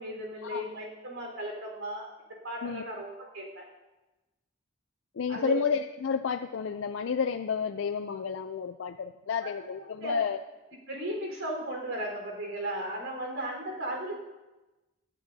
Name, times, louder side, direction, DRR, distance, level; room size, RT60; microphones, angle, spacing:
voice 1, 0.0-2.1 2.4-3.7 5.3-5.6 10.0-10.1 10.9-14.1, right 1 dB, 90° right, 0 dB, 4.2 m, -35 dB
voice 2, 5.2-10.4, left 6 dB, 70° left, 8 dB, 0.4 m, -31 dB
19.0 x 11.5 x 2.7 m, 1.1 s
head